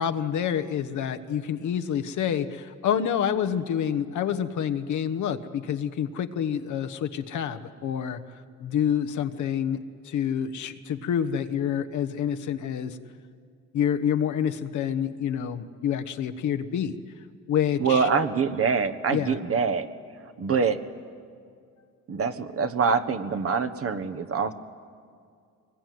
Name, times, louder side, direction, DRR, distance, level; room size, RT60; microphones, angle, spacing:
voice 1, 0.0-13.0 13.7-17.0 17.5-18.1 19.1-19.4, left 8 dB, 75° left, 9 dB, 1.2 m, -28 dB
voice 2, 17.8-19.9 20.4-20.8 22.1-24.5, right 5 dB, 50° right, 10 dB, 1.4 m, -25 dB
23.0 x 21.0 x 9.4 m, 2.2 s
cardioid pair, 90°, 30 cm